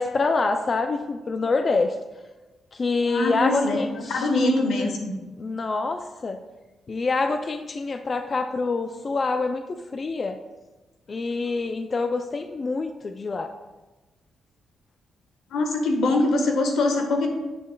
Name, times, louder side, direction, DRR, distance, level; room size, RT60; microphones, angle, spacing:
voice 1, 0.0-2.0 2.7-4.9 5.4-6.4 6.9-10.4 11.1-13.5, left 3 dB, 35° left, 7 dB, 0.3 m, -26 dB
voice 2, 3.0-3.8 4.1-5.1 15.5-17.3, left 2 dB, 85° left, 4 dB, 1.2 m, -23 dB
9.8 x 7.5 x 2.2 m, 1.2 s
cardioid pair, 130°, 0 cm